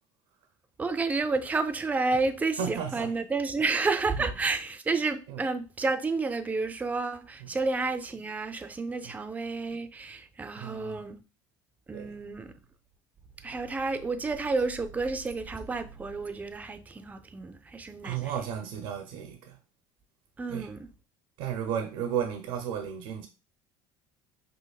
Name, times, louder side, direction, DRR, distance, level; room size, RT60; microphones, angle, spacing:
voice 1, 0.8-11.2 11.9-12.5 13.4-18.3 20.4-20.9, right 3 dB, 15° right, 0.4 m, -30 dB
voice 2, 2.6-3.2 4.1-4.4 5.3-5.4 7.4-7.5 9.0-9.2 10.6-11.0 11.9-12.2 18.0-19.6 20.5-20.7 21.4-23.3, right 8 dB, 75° right, 0.5 m, -34 dB
5.3 x 2.0 x 2.3 m
supercardioid pair, 90°, 10 cm